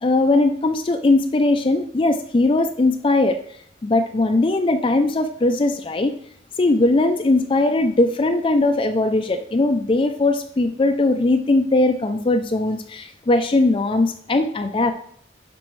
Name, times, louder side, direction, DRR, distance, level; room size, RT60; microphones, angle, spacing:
voice 1, 0.0-3.4 3.8-6.2 6.6-14.9, left 2 dB, 30° left, 7 dB, 0.4 m, -19 dB
10.5 x 5.2 x 3.2 m, 0.65 s
head